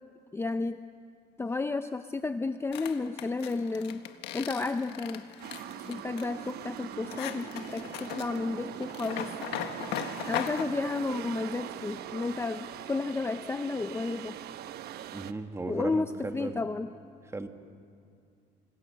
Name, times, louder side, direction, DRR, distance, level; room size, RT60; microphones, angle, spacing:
voice 1, 0.3-0.8 1.4-4.0 4.3-5.2 5.8-9.3 10.3-14.4 15.7-16.9, left 3 dB, 15° left, 10 dB, 0.6 m, -32 dB
sound 1, 2.7-10.7, left 10 dB, 90° left, 1.6 m, -38 dB
sound 2, 5.4-15.3, right 11 dB, 70° right, 1.0 m, -41 dB
voice 2, 15.1-16.7 17.3-17.5, right 3 dB, 15° right, 6 dB, 1.7 m, -36 dB
28.0 x 26.5 x 6.9 m, 2.4 s
cardioid pair, 110°, 17 cm